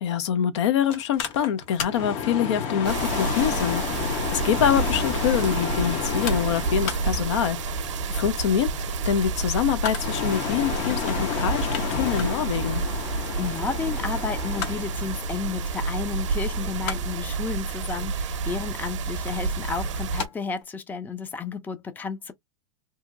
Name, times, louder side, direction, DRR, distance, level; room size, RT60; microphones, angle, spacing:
voice 1, 0.0-8.7 9.0-12.8, left 9 dB, 70° left, 0.7 m, -25 dB
Mechanical fan, 0.9-20.3 20.6-20.7, left 7 dB, 45° left, 0.9 m, -32 dB
sound 1, 2.8-20.3, right 4 dB, 80° right, 0.7 m, -29 dB
voice 2, 13.2-22.3, left 5 dB, 10° left, 0.5 m, -32 dB
2.8 x 2.7 x 2.4 m
hypercardioid pair, 125°, 15 cm